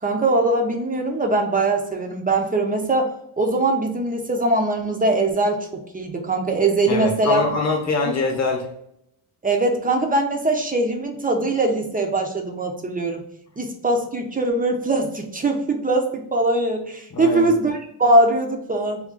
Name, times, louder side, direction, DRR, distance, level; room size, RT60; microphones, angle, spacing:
voice 1, 0.0-7.4 8.0-8.1 9.4-13.3 13.6-19.0, right 2 dB, 20° right, 3 dB, 0.4 m, -21 dB
voice 2, 6.9-8.7 17.1-17.5, left 3 dB, 35° left, 2 dB, 0.8 m, -24 dB
3.5 x 2.3 x 3.6 m, 0.76 s
cardioid pair, 125°, 49 cm